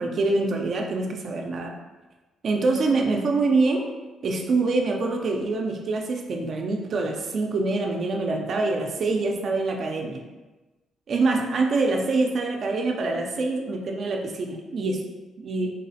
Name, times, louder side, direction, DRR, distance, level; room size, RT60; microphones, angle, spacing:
voice 1, 0.0-1.7 2.4-3.9 4.2-10.2 11.1-15.0 15.4-15.7, right 3 dB, 55° right, 1 dB, 0.4 m, -25 dB
3.8 x 2.0 x 2.7 m, 1.2 s
cardioid pair, 90°, 0 cm